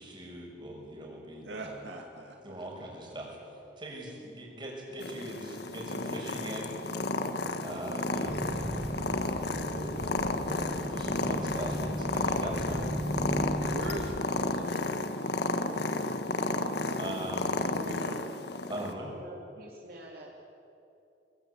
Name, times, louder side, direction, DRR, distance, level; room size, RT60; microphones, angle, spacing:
voice 1, 0.0-1.8 2.4-3.4 3.8-7.0 7.6-12.8 17.0-17.6 18.7-19.1, right 1 dB, 25° right, -1 dB, 6.7 m, -41 dB
voice 2, 1.4-2.6 13.7-15.2 17.7-18.3, right 1 dB, 70° right, 2 dB, 2.3 m, -41 dB
Purr, 5.0-18.9, left 2 dB, 60° left, 1.6 m, -32 dB
sound 1, 8.3-14.2, equal, 10° right, 1.1 m, -37 dB
voice 3, 19.1-20.3, right 1 dB, 55° right, -2 dB, 3.1 m, -47 dB
24.5 x 23.0 x 8.6 m, 2.7 s
head